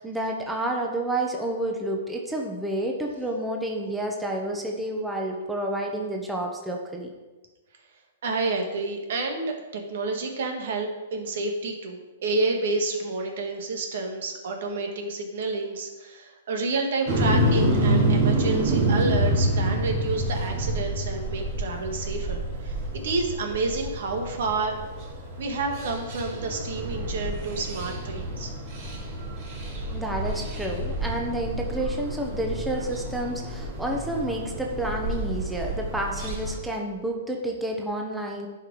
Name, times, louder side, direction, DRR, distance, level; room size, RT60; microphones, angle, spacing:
voice 1, 0.0-7.1 29.9-38.5, right 1 dB, 5° right, 0 dB, 1.0 m, -30 dB
voice 2, 8.2-22.8 23.0-24.8 25.4-28.5, right 3 dB, 65° right, 3 dB, 1.7 m, -29 dB
sound 1, 17.1-36.6, right 1 dB, 45° right, 3.3 m, -28 dB
10.5 x 5.1 x 4.7 m, 1.2 s
hypercardioid pair, 140°, 0 cm